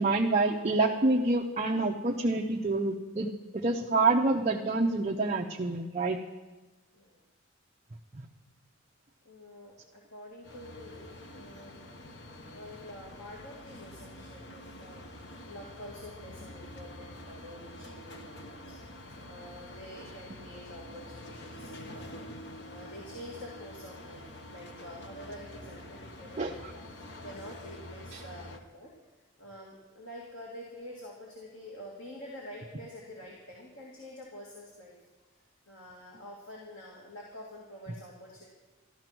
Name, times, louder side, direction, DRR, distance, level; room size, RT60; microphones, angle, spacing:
voice 1, 0.0-3.3 3.5-6.2 8.2-8.3 26.4-26.5 28.1-28.2, right 3 dB, 35° right, 0 dB, 0.7 m, -27 dB
voice 2, 9.2-11.8 12.5-15.1 15.4-22.1 22.6-26.8 27.2-28.9 29.4-34.9 35.7-38.5, equal, 80° left, -4 dB, 2.7 m, -47 dB
sound 1, 10.4-28.6, left 1 dB, 55° left, 1.2 m, -47 dB
13.5 x 13.5 x 6.1 m, 1.2 s
head